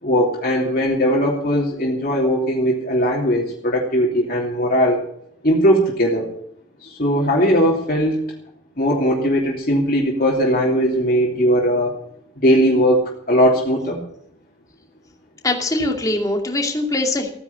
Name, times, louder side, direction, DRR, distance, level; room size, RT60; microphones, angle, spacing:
voice 1, 0.0-5.0 5.4-6.3 6.8-8.2 8.8-11.9 12.4-14.0, equal, 50° left, -3 dB, 2.9 m, -19 dB
voice 2, 15.4-17.3, left 2 dB, 20° left, 1 dB, 2.5 m, -22 dB
16.0 x 9.9 x 6.9 m, 0.70 s
head